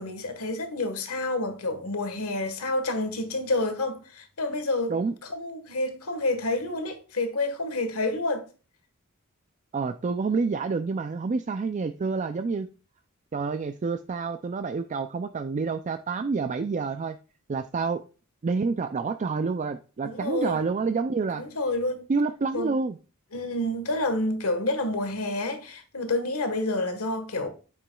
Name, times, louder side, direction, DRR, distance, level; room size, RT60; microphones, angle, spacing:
voice 1, 0.0-5.0 5.3-8.4 20.0-20.6 21.4-22.1 22.5-22.7 23.3-27.5, left 2 dB, 85° left, 1.4 m, -29 dB
voice 2, 9.7-12.7 13.3-17.2 17.5-18.0 18.4-21.4 22.1-23.0, right 4 dB, 35° right, 0.4 m, -28 dB
9.0 x 6.8 x 2.3 m
head